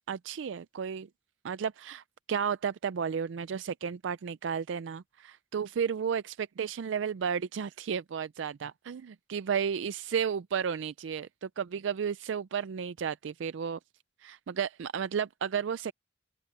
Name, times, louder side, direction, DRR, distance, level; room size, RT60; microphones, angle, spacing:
voice 1, 0.1-1.1 1.4-13.8 14.2-15.9, right 7 dB, 75° right, 0.4 m, -33 dB
open air
head